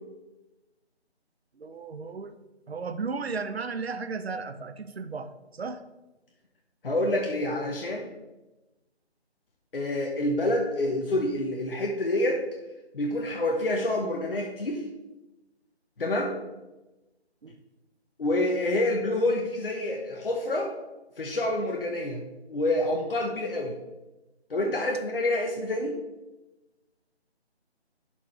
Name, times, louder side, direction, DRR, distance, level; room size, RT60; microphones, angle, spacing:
voice 1, 1.6-2.4 2.7-5.8 17.4-17.6, right 4 dB, 65° right, 11 dB, 0.8 m, -35 dB
voice 2, 6.8-8.1 9.7-12.4 12.9-14.8 16.0-16.3 18.2-20.7 21.2-22.2 22.5-23.7 24.5-26.0, left 1 dB, 55° left, 1 dB, 1.0 m, -27 dB
11.0 x 4.5 x 3.1 m, 1.0 s
figure-of-eight pair, 160°, 33 cm